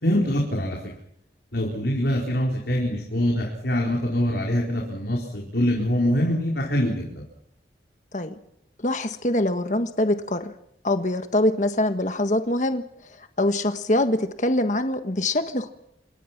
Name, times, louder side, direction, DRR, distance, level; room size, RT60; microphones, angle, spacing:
voice 1, 0.0-0.9 1.5-7.2, equal, 70° left, -1 dB, 4.6 m, -24 dB
voice 2, 8.8-10.5 10.8-12.9 13.4-15.7, left 1 dB, 45° left, 8 dB, 1.5 m, -24 dB
27.5 x 22.0 x 6.0 m, 0.72 s
head